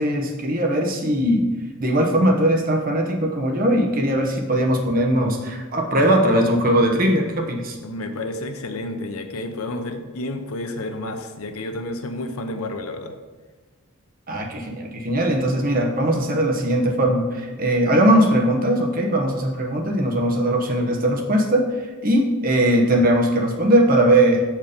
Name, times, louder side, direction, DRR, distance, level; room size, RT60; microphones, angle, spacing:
voice 1, 0.0-1.5 1.8-7.8 14.3-21.7 22.0-24.4, right 1 dB, 40° right, 2 dB, 0.9 m, -20 dB
voice 2, 7.8-13.1, left 1 dB, 85° left, 6 dB, 0.7 m, -30 dB
7.1 x 4.5 x 5.1 m, 1.3 s
head